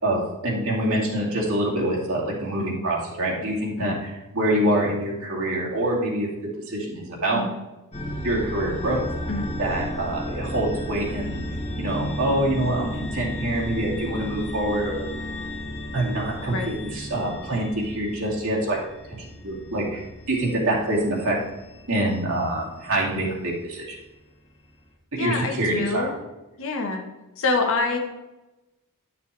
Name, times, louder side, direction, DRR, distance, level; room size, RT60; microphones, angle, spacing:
voice 1, 0.0-7.4 8.2-9.0 9.6-11.4 11.8-15.1 15.9-18.8 19.1-19.2 19.4-20.0 20.3-21.4 21.9-24.0 25.1-26.1, right 1 dB, 65° right, -4 dB, 2.5 m, -25 dB
sound 1, 7.9-24.0, left 1 dB, 30° left, 1.5 m, -34 dB
voice 2, 25.2-26.2 26.6-27.1 27.4-28.0, left 3 dB, 65° left, 4 dB, 1.3 m, -26 dB
11.5 x 6.9 x 3.4 m, 1.0 s
head